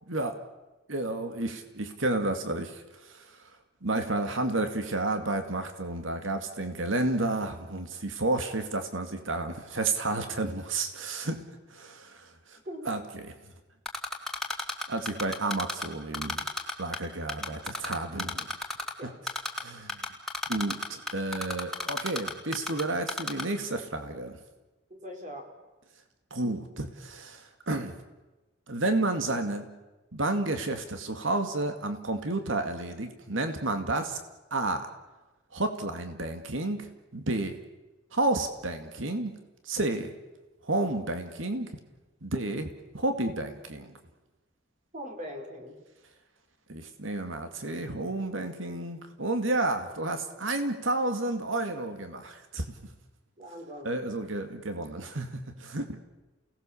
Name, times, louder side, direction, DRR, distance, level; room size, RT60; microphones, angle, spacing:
voice 1, 0.9-3.4 3.8-11.4 11.7-12.6 12.9-13.3 14.9-16.4 16.8-18.5 19.6-20.0 20.5-24.4 26.3-28.0 28.7-29.7 30.1-34.2 34.5-34.9 35.5-37.6 38.1-39.3 39.6-40.1 40.6-41.7 42.2-43.9 46.7-52.7 53.8-56.0, right 2 dB, 80° right, 7 dB, 2.2 m, -31 dB
Typing, 13.8-15.8 16.1-17.0 17.3-18.9 19.3-19.6 19.9-22.8 23.1-23.4, left 1 dB, 5° left, 2.5 m, -31 dB
voice 2, 24.9-25.5 44.9-45.8 53.4-54.0, equal, 40° right, 3 dB, 3.9 m, -41 dB
29.5 x 18.5 x 7.1 m, 1.1 s
head